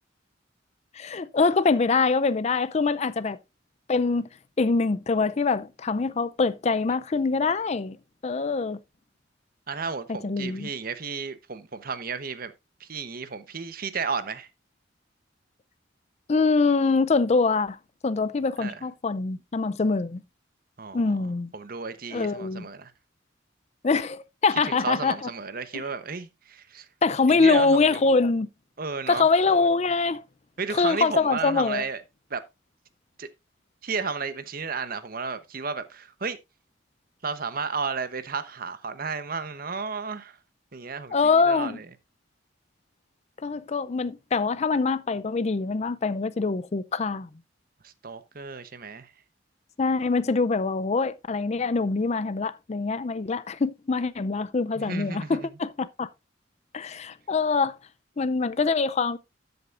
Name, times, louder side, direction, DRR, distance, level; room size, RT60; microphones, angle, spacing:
voice 1, 0.9-3.4 3.9-4.3 4.6-8.0 8.2-8.8 10.2-10.7 16.3-17.8 18.0-20.2 20.9-21.5 22.1-22.7 23.8-25.3 25.7-25.8 27.0-28.5 29.1-30.2 30.8-31.8 41.1-41.8 43.4-47.3 49.8-56.1 56.7-57.8 58.2-59.2, left 4 dB, 35° left, 0.4 m, -24 dB
voice 2, 9.7-12.5 12.8-14.5 18.6-18.8 20.8-21.2 21.5-22.9 24.7-26.9 27.3-28.0 28.8-29.3 30.6-32.0 32.3-32.4 33.2-33.3 33.8-36.4 37.2-40.4 40.7-41.9 47.8-49.1 54.8-55.5, right 5 dB, 50° right, 0.9 m, -33 dB
12.5 x 7.9 x 2.5 m
head